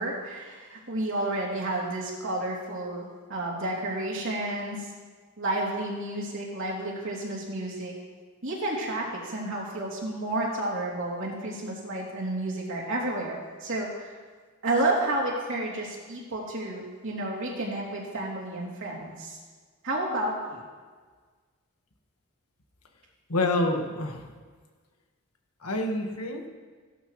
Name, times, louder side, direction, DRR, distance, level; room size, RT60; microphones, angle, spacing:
voice 1, 0.0-4.9 5.4-7.9 8.4-14.2 14.6-19.4 19.8-20.6, right 1 dB, 60° right, -4 dB, 3.0 m, -31 dB
voice 2, 23.3-24.2 25.6-26.5, left 2 dB, 85° left, 3 dB, 1.6 m, -27 dB
16.0 x 12.0 x 3.2 m, 1.5 s
head